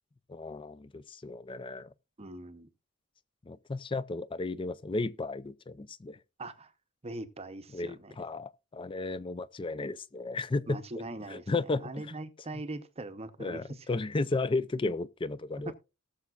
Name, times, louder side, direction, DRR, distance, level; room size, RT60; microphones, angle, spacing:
voice 1, 0.3-1.9 3.5-6.2 7.7-10.8 11.3-12.1 12.5-12.6 13.4-15.7, left 3 dB, 25° left, 0.4 m, -34 dB
voice 2, 2.2-2.7 6.4-6.7 7.0-8.3 10.7-11.5 11.8-13.9, right 2 dB, 30° right, 0.7 m, -41 dB
18.5 x 7.0 x 2.4 m
head